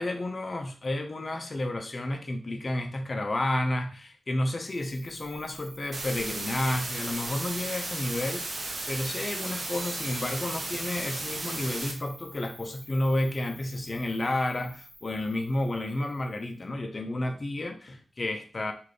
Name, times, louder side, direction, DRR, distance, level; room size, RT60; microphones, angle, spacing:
voice 1, 0.0-18.7, left 1 dB, 40° left, 5 dB, 0.6 m, -31 dB
Cricket, 4.6-16.6, equal, 10° left, 1.4 m, -50 dB
sound 1, 5.9-11.9, right 2 dB, 50° right, 0.7 m, -35 dB
sound 2, 9.7-11.1, right 1 dB, 90° right, 1.1 m, -49 dB
3.7 x 2.6 x 3.3 m, 0.39 s
wide cardioid pair, 75°, 0 cm